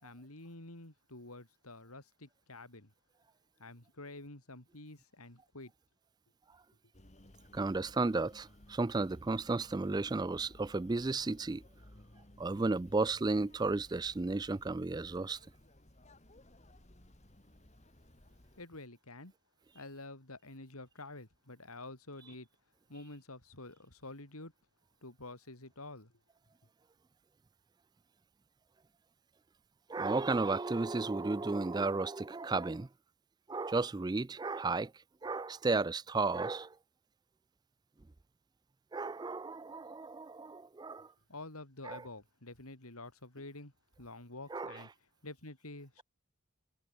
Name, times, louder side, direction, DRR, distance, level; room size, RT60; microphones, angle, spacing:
voice 1, 0.0-2.9 3.6-5.7 18.6-19.3 19.7-22.5 22.9-24.5 25.0-26.1 41.3-43.7 44.0-44.9 45.2-46.0, left 2 dB, 85° left, 4.6 m, -49 dB
sound 1, 6.9-18.6, left 1 dB, 30° left, 1.9 m, -59 dB
voice 2, 7.5-11.6 12.4-15.4 29.9-32.9 33.5-34.9 35.2-36.8 38.9-41.1 41.8-42.0 44.5-44.8, right 3 dB, 20° right, 0.4 m, -33 dB
head